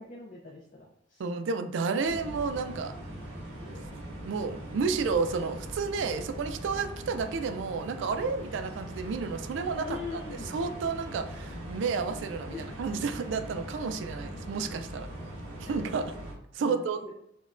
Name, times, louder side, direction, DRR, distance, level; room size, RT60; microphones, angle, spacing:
voice 1, 0.0-1.2 2.1-2.5 3.6-3.8 9.7-10.6 12.5-12.8 15.8-15.9 16.6-17.1, left 4 dB, 40° left, -2 dB, 0.5 m, -43 dB
voice 2, 1.2-2.9 4.2-10.2 10.5-15.1 15.6-16.0 16.5-17.0, right 4 dB, 60° right, 8 dB, 0.3 m, -31 dB
sound 1, 2.0-16.3, right 1 dB, 30° right, 1.0 m, -41 dB
5.0 x 2.2 x 2.4 m, 0.75 s
head